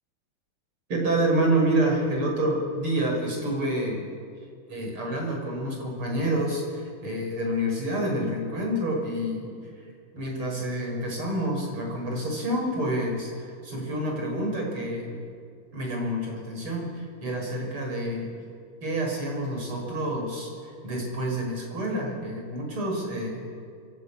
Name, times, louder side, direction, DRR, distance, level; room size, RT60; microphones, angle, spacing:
voice 1, 0.9-4.1 4.7-9.9 10.1-15.2 15.7-18.3 18.8-23.5, right 1 dB, 90° right, 0 dB, 7.3 m, -28 dB
28.0 x 22.0 x 8.8 m, 2.2 s
omnidirectional pair, 2.3 m